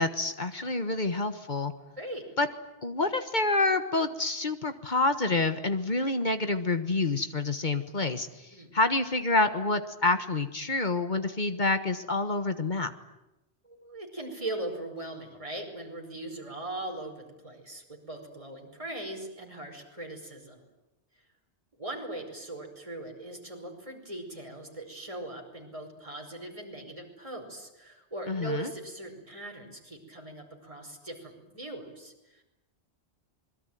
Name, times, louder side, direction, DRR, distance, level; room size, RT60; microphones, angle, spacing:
voice 1, 0.0-1.7 2.4-2.5 2.8-12.9 28.3-28.7, left 2 dB, 45° left, 9 dB, 1.5 m, -28 dB
voice 2, 13.6-20.6 21.8-32.4, right 2 dB, 30° right, 2 dB, 5.3 m, -40 dB
27.0 x 22.0 x 9.3 m, 0.98 s
omnidirectional pair, 1.1 m